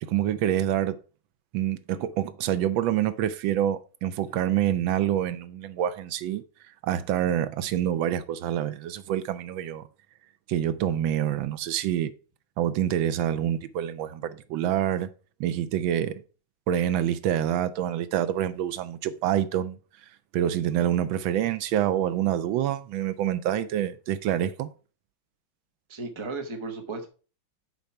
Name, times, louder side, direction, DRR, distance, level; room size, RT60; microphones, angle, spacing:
voice 1, 0.0-1.0 1.5-6.4 6.8-9.8 10.5-12.1 12.6-15.1 15.4-16.2 16.7-19.8 20.3-24.7, right 11 dB, 80° right, 1.4 m, -26 dB
voice 2, 25.9-27.1, right 3 dB, 20° right, 0.8 m, -35 dB
6.6 x 4.7 x 5.6 m
omnidirectional pair, 2.1 m